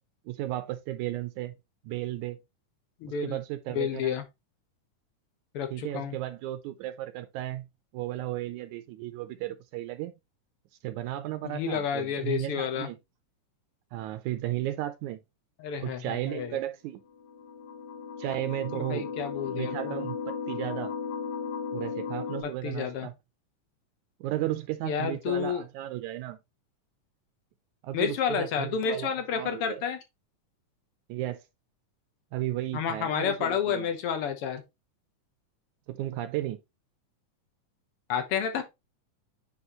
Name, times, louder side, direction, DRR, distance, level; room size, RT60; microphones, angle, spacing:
voice 1, 0.3-1.5 1.8-2.4 3.2-4.2 5.7-7.7 7.9-10.1 10.8-13.0 13.9-15.2 15.8-17.0 18.2-19.1 19.5-20.9 21.7-23.1 24.2-26.4 27.8-29.8 31.1-31.4 32.3-33.9 35.9-36.6, right 14 dB, 75° right, 1.9 m, -34 dB
voice 2, 3.0-3.4 3.7-4.2 5.5-6.2 11.4-12.9 15.6-16.6 18.8-20.1 22.4-23.1 24.8-25.6 27.9-30.0 32.7-34.6 38.1-38.6, left 7 dB, 70° left, 1.4 m, -30 dB
sound 1, 17.1-22.4, left 5 dB, 40° left, 1.8 m, -35 dB
9.7 x 3.4 x 3.0 m
omnidirectional pair, 3.7 m